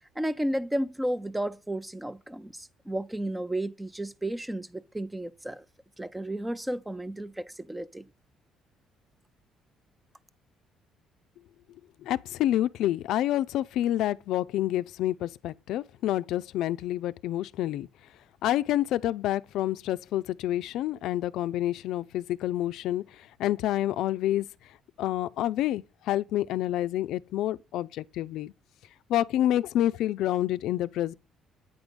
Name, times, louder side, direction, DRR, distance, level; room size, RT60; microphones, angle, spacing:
voice 1, 0.2-5.6 6.0-8.0, right 1 dB, 5° right, 0.5 m, -33 dB
voice 2, 12.0-17.9 18.4-24.5 25.0-28.5 29.1-31.1, left 13 dB, 75° left, 0.5 m, -28 dB
9.1 x 5.2 x 7.9 m
cardioid pair, 130°, 0 cm